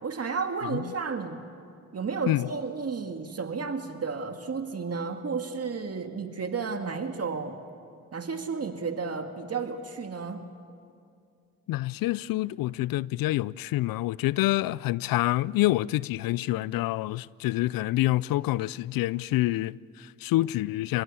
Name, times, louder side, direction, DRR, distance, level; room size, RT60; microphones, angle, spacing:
voice 1, 0.0-1.5 1.9-7.5 8.1-10.4, right 5 dB, 45° right, 2.0 m, -32 dB
voice 2, 0.6-0.9 2.3-2.5 11.7-21.0, left 17 dB, 85° left, 0.5 m, -27 dB
29.5 x 16.0 x 8.4 m
supercardioid pair, 60°, 34 cm